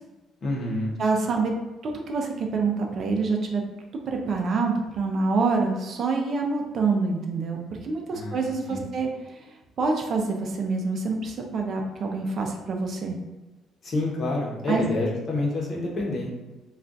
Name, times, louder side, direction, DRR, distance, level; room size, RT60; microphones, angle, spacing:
voice 1, 0.4-0.9 8.1-8.8 13.8-16.3, left 2 dB, 40° left, -2 dB, 0.8 m, -28 dB
voice 2, 1.0-1.5 1.8-3.6 4.1-9.5 9.8-13.2 14.7-14.9, right 4 dB, 45° right, 2 dB, 0.4 m, -26 dB
2.4 x 2.2 x 3.9 m, 1.1 s
cardioid pair, 140°, 0 cm